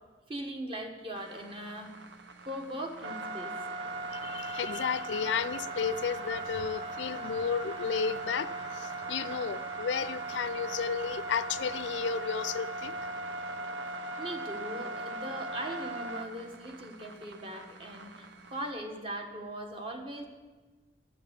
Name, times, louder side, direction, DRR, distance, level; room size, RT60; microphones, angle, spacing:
voice 1, 0.3-1.9 2.4-3.5 14.2-20.2, right 1 dB, 30° right, 3 dB, 1.4 m, -40 dB
sound 1, 1.1-18.7, right 2 dB, 85° right, 0.9 m, -39 dB
voice 2, 4.1-12.9, left 6 dB, 80° left, 15 dB, 0.4 m, -33 dB
12.5 x 5.9 x 8.1 m, 1.3 s
head